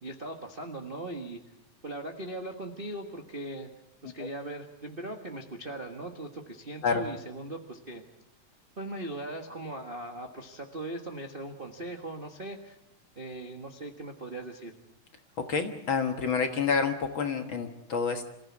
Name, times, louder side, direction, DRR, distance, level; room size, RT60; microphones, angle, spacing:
voice 1, 0.0-1.4 1.8-3.7 4.0-8.0 8.8-12.8 13.1-14.7, right 1 dB, 35° right, 3 dB, 0.9 m, -39 dB
voice 2, 15.4-18.2, left 5 dB, 50° left, 5 dB, 1.9 m, -28 dB
27.0 x 15.5 x 8.5 m, 0.88 s
omnidirectional pair, 3.4 m